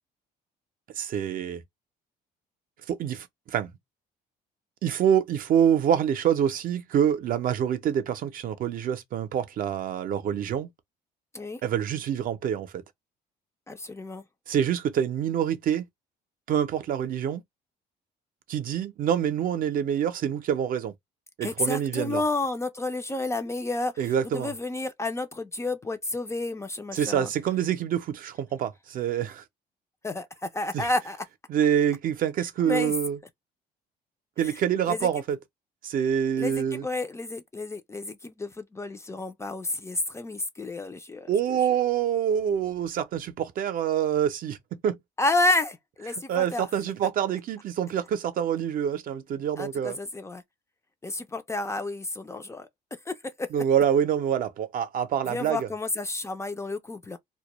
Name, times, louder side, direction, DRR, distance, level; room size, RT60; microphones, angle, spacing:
voice 1, 1.0-1.6 2.9-3.7 4.8-10.7 11.6-12.8 14.5-15.9 16.5-17.4 18.5-20.9 21.4-22.2 24.0-24.5 26.9-29.4 30.7-30.9 31.5-33.2 34.4-35.4 35.8-36.8 41.3-45.0 46.3-50.0 53.5-55.7, right 9 dB, 55° right, 0.5 m, -26 dB
voice 2, 13.7-14.2 21.4-27.3 30.0-31.2 32.6-32.9 34.4-34.6 34.9-35.1 36.4-41.6 45.2-46.7 49.6-50.4 51.0-52.7 53.1-53.5 55.3-57.2, left 2 dB, 15° left, 0.4 m, -30 dB
2.2 x 2.1 x 2.9 m
cardioid pair, 110°, 17 cm